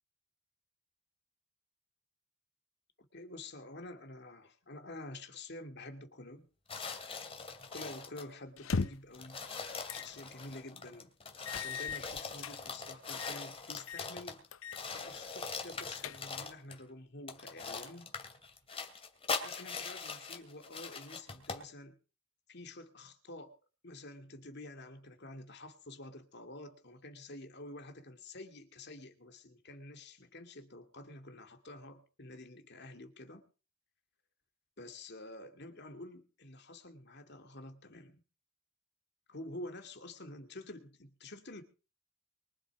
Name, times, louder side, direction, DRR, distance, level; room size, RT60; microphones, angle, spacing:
voice 1, 3.0-6.5 7.7-9.4 9.9-11.1 11.6-14.4 14.9-18.1 19.3-22.0 22.5-23.6 23.8-33.5 34.8-38.2 39.3-41.6, left 2 dB, 55° left, 5 dB, 2.4 m, -49 dB
sound 1, 6.7-8.3 8.8-8.9 9.1-14.5 14.7-16.8 17.3-21.7, left 4 dB, 30° left, 2.7 m, -42 dB
sound 2, 8.6-9.2 9.9-10.1 10.5-10.6 11.5-12.6 13.1-13.4 13.8-14.1 14.5-14.8 15.1-15.2 15.7-16.5, left 5 dB, 75° left, 0.7 m, -38 dB
24.0 x 8.2 x 4.9 m, 0.36 s
head